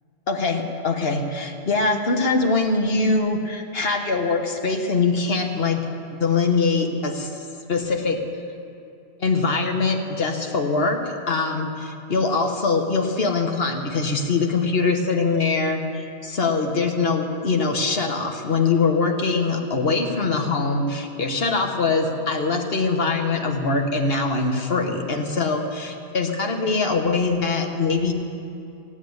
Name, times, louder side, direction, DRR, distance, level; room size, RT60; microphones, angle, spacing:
voice 1, 0.3-5.9 6.2-7.3 7.7-8.2 9.2-11.0 11.3-15.8 16.2-28.1, left 4 dB, 55° left, 4 dB, 1.5 m, -23 dB
16.0 x 8.1 x 9.6 m, 2.6 s
omnidirectional pair, 1.2 m